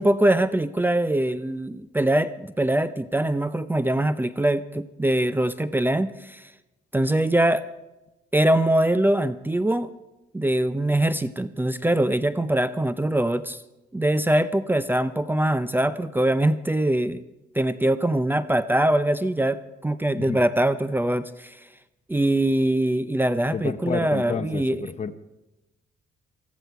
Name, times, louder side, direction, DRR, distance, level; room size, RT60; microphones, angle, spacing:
voice 1, 0.0-6.5 6.9-7.6 8.3-9.9 10.3-13.6 13.9-17.2 17.5-21.6 22.1-24.8, right 1 dB, 10° right, 13 dB, 0.6 m, -23 dB
voice 2, 23.5-25.2, left 6 dB, 35° left, 10 dB, 1.0 m, -30 dB
19.0 x 14.5 x 4.6 m, 1.0 s
cardioid pair, 90°, 20 cm